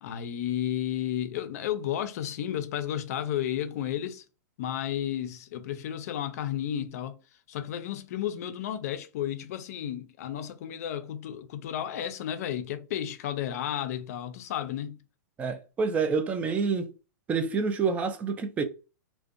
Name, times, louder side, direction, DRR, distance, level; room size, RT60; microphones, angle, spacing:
voice 1, 0.0-4.2 4.6-7.2 7.5-15.0, left 10 dB, 55° left, 0.5 m, -32 dB
voice 2, 15.4-16.9 17.3-18.6, right 5 dB, 15° right, 0.4 m, -27 dB
2.5 x 2.1 x 2.4 m
hypercardioid pair, 145°, 10 cm